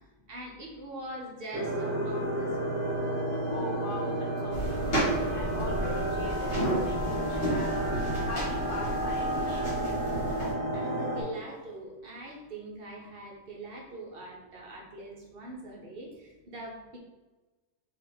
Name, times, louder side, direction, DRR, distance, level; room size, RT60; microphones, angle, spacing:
voice 1, 0.0-2.8 7.9-8.1 10.7-17.0, right 1 dB, 55° right, -1 dB, 0.7 m, -42 dB
sound 1, 1.5-11.2, right 1 dB, 10° right, 0.8 m, -31 dB
voice 2, 3.5-4.1 4.4-7.9 8.3-9.7, left 2 dB, 70° left, 0 dB, 0.5 m, -41 dB
sound 2, 4.5-10.5, right 1 dB, 45° left, 1.5 m, -33 dB
3.6 x 2.7 x 3.4 m, 1.2 s
omnidirectional pair, 1.4 m